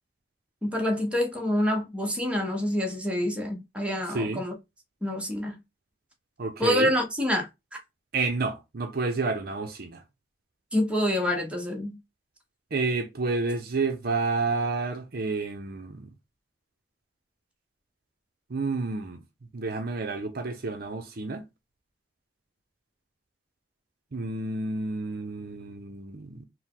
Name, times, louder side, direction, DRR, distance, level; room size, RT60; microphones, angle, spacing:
voice 1, 0.6-4.5 5.0-5.6 6.6-7.5 7.7-7.8 10.7-12.0, left 1 dB, 5° right, 1.0 m, -27 dB
voice 2, 6.4-6.9 8.1-10.0 12.7-16.1 18.5-19.2 19.5-21.4 24.1-26.4, right 3 dB, 55° right, 0.6 m, -30 dB
4.5 x 2.1 x 3.7 m
head